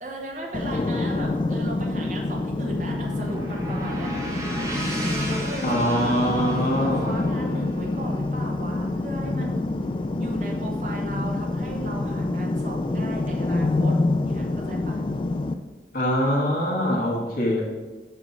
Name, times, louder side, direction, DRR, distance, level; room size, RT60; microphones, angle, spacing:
voice 1, 0.0-4.1 4.9-9.7 10.2-15.0, right 1 dB, 45° right, -1 dB, 1.3 m, -36 dB
sound 1, 0.5-15.5, left 2 dB, 30° left, 0.3 m, -27 dB
sound 2, 2.4-10.3, right 1 dB, 20° right, 1.1 m, -37 dB
voice 2, 5.6-7.1 15.9-17.6, equal, 50° left, -1 dB, 1.6 m, -23 dB
8.6 x 3.1 x 5.5 m, 1.2 s
head